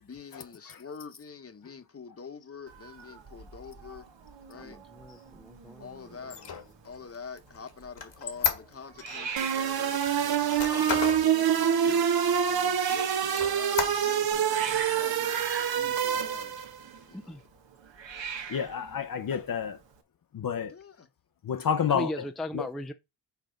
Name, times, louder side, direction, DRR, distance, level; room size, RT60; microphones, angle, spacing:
voice 1, 0.0-4.1 4.5-4.8 5.8-6.4 6.8-10.9 11.3-12.1 12.5-15.4 15.7-16.6 17.1-17.4 20.7-21.1, left 5 dB, 30° left, 1.0 m, -46 dB
Hiss, 2.7-20.0, right 6 dB, 75° right, 1.4 m, -43 dB
voice 2, 4.5-6.6 17.1-17.4 21.9-22.9, left 1 dB, ahead, 0.4 m, -39 dB
Squeak, 6.2-9.2 9.7-11.2 11.7-11.8 12.2-12.9 13.3-14.3, left 7 dB, 70° left, 1.6 m, -33 dB
sound 1, 9.4-16.8, right 9 dB, 55° right, 0.9 m, -26 dB
voice 3, 18.5-19.8 20.3-20.7 21.4-22.1 22.5-22.7, left 7 dB, 50° left, 0.7 m, -29 dB
5.8 x 4.4 x 5.1 m
cardioid pair, 100°, 44 cm